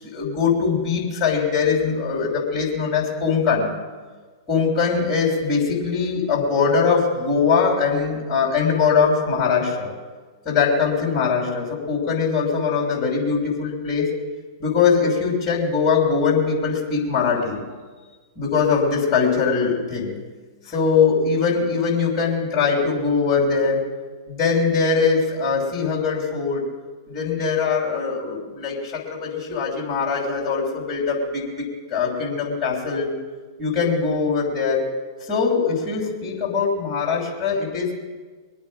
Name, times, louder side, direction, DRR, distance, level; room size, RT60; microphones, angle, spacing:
voice 1, 0.0-3.7 4.5-9.9 10.4-14.1 14.6-17.6 18.4-20.1 20.7-23.9 24.3-26.6 27.1-33.1 33.6-34.9 35.2-37.9, left 5 dB, 25° left, -5 dB, 6.1 m, -21 dB
24.0 x 8.9 x 6.3 m, 1.4 s
hypercardioid pair, 105°, 2 cm